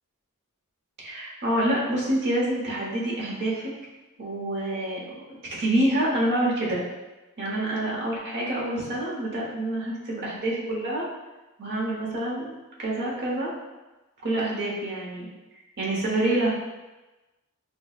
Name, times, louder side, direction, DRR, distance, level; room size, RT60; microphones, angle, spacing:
voice 1, 1.0-3.7 4.2-6.8 7.4-11.0 11.6-13.5 14.2-16.5, right 1 dB, 50° right, -4 dB, 0.9 m, -27 dB
5.3 x 2.0 x 2.4 m, 1.1 s
head